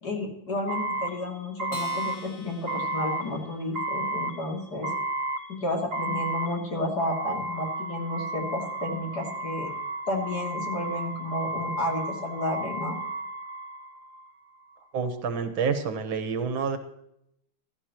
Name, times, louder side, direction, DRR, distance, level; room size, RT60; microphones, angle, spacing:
voice 1, 0.0-4.9 5.5-9.7 10.1-13.0, left 1 dB, 50° left, 0 dB, 3.3 m, -31 dB
sound 1, 0.7-14.3, right 2 dB, 40° right, 1.8 m, -33 dB
Acoustic guitar, 1.7-4.4, left 2 dB, 80° left, 2.8 m, -46 dB
voice 2, 14.9-16.8, right 5 dB, 75° right, 9 dB, 1.9 m, -28 dB
16.0 x 13.5 x 3.0 m, 0.77 s
omnidirectional pair, 2.2 m